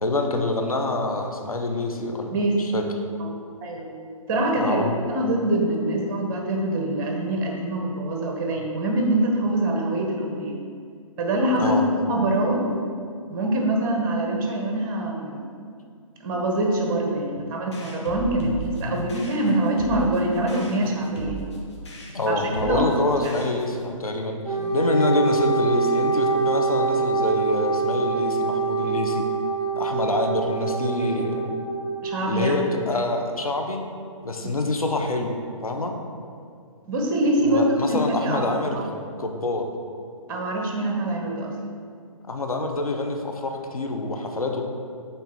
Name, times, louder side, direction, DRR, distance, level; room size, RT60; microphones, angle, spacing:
voice 1, 0.0-2.8 4.6-5.0 11.6-11.8 18.4-18.5 18.8-19.1 22.1-29.2 29.8-31.5 32.2-33.8 34.2-35.3 35.6-35.9 37.4-39.7 42.3-44.7, left 2 dB, 85° left, 3 dB, 0.9 m, -26 dB
voice 2, 3.6-3.9 4.3-10.6 11.2-12.6 13.3-15.4 16.2-21.4 22.2-22.9 23.2-23.3 24.6-24.8 32.0-32.6 36.8-38.8 40.3-41.5, right 1 dB, 35° right, 1 dB, 1.2 m, -24 dB
sound 1, 17.7-23.9, right 3 dB, 50° left, 1.5 m, -38 dB
Wind instrument woodwind instrument, 24.5-32.2, right 4 dB, 15° right, 0.7 m, -25 dB
6.2 x 4.0 x 5.7 m, 2.3 s
figure-of-eight pair, 135°, 18 cm